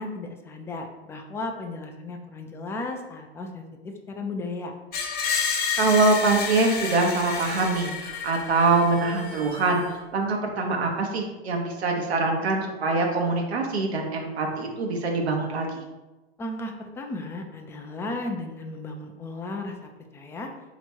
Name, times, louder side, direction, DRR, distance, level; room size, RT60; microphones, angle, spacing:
voice 1, 0.0-4.7 16.4-20.5, left 2 dB, 10° left, 2 dB, 0.4 m, -35 dB
Screech, 4.9-9.9, left 5 dB, 30° left, 0.7 m, -30 dB
voice 2, 5.7-15.8, right 3 dB, 80° right, 1 dB, 0.9 m, -24 dB
3.4 x 3.0 x 4.3 m, 1.1 s
hypercardioid pair, 105°, 32 cm